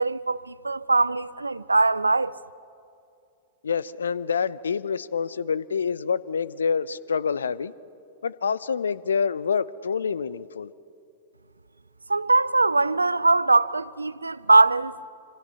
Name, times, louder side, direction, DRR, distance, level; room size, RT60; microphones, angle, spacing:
voice 1, 0.0-2.4 12.1-14.9, right 3 dB, 85° right, 0.4 m, -21 dB
voice 2, 3.6-7.7 8.2-10.7, left 6 dB, 70° left, 0.5 m, -27 dB
25.5 x 25.5 x 5.7 m
figure-of-eight pair, 100°, 0 cm